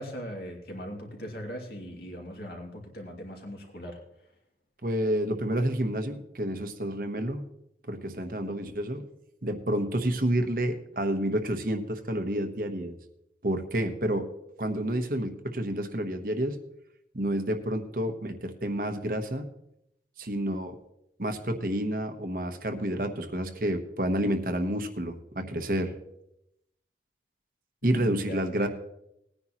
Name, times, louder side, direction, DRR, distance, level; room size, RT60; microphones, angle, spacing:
voice 1, 0.0-4.0 27.8-28.7, equal, 60° left, 0 dB, 2.6 m, -39 dB
voice 2, 4.8-7.5 7.9-9.1 9.4-13.0 13.4-14.3 14.6-16.6 17.1-19.5 20.2-20.7 21.2-25.9 27.8-28.7, right 1 dB, 50° right, 7 dB, 1.1 m, -29 dB
19.5 x 9.9 x 3.0 m, 0.81 s
head